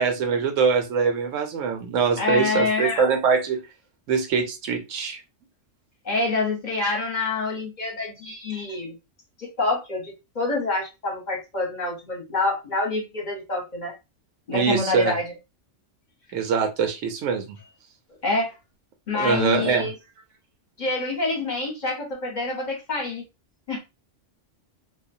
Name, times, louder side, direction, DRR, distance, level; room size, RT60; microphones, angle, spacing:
voice 1, 0.0-3.6 4.1-5.2 14.5-15.1 16.3-17.6 19.1-19.9, right 5 dB, 90° right, 1.0 m, -23 dB
voice 2, 2.2-3.1 6.0-9.0 9.4-13.9 14.5-15.3 18.2-18.5 19.1-19.9 20.8-23.2 23.7-23.8, left 3 dB, 45° left, 0.8 m, -27 dB
2.6 x 2.1 x 2.5 m
omnidirectional pair, 1.3 m